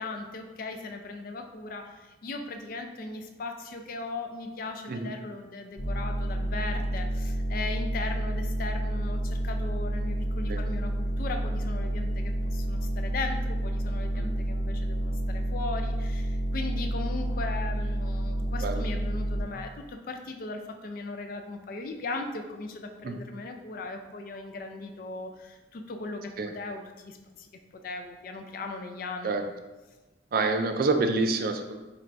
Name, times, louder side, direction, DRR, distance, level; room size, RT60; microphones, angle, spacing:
voice 1, 0.0-29.3, left 3 dB, 50° left, 5 dB, 0.3 m, -38 dB
sound 1, 5.8-19.4, right 1 dB, 90° left, 0.7 m, -29 dB
voice 2, 30.3-31.8, right 3 dB, 50° right, 6 dB, 0.3 m, -27 dB
4.5 x 3.2 x 2.5 m, 1.1 s
head